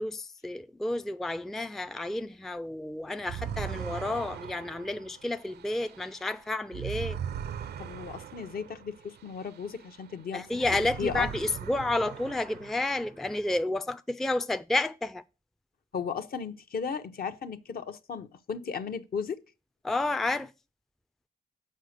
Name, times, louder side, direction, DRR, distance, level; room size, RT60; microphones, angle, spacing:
voice 1, 0.0-7.2 10.3-15.2 19.8-20.5, left 2 dB, ahead, 0.4 m, -31 dB
sound 1, 3.2-10.1 10.5-13.2, right 9 dB, 70° right, 0.5 m, -40 dB
voice 2, 7.8-10.6 11.0-11.3 15.9-19.4, left 6 dB, 60° left, 0.8 m, -35 dB
6.5 x 5.0 x 6.4 m
cardioid pair, 70°, 18 cm